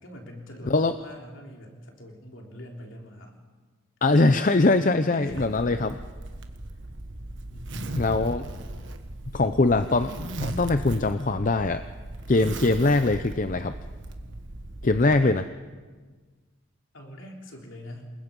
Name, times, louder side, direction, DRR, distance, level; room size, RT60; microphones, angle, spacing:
voice 1, 0.0-3.4 5.1-5.5 7.5-8.2 16.9-18.1, equal, 60° left, 1 dB, 3.5 m, -43 dB
voice 2, 4.0-6.0 7.9-8.4 9.3-11.8 12.3-13.7 14.8-15.4, left 2 dB, 35° left, 10 dB, 0.6 m, -22 dB
Zipper (clothing), 5.3-15.2, right 1 dB, 55° right, 1.5 m, -37 dB
28.5 x 21.0 x 5.4 m, 1.4 s
head